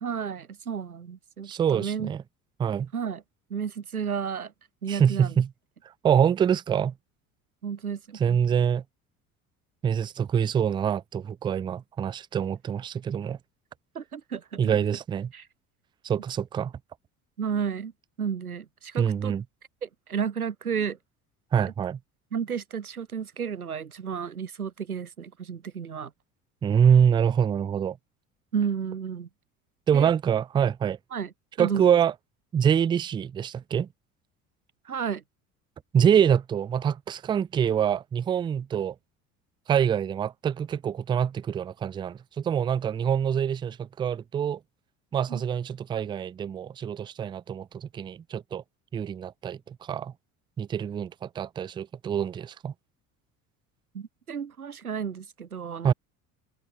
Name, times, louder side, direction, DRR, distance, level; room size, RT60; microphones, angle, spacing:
voice 1, 0.0-2.1 2.9-3.2 3.5-4.5 4.8-5.3 7.6-8.4 13.9-14.8 15.3-15.5 17.4-17.9 18.2-19.3 19.8-21.0 22.3-26.1 28.5-29.3 29.9-30.1 31.1-32.0 34.9-35.2 45.3-45.4 53.9-55.9, right 7 dB, 80° right, 2.3 m, -32 dB
voice 2, 1.5-2.2 2.6-2.9 4.9-5.5 6.0-6.9 8.2-8.8 9.8-13.4 14.6-15.3 16.0-16.7 19.0-19.4 21.5-22.0 26.6-28.0 29.9-31.0 31.6-32.1 32.5-33.9 35.9-38.9 39.7-44.6 45.1-48.6 48.9-50.1 50.6-52.7 55.8-55.9, right 8 dB, 15° right, 0.3 m, -25 dB
open air
figure-of-eight pair, 60°, 43 cm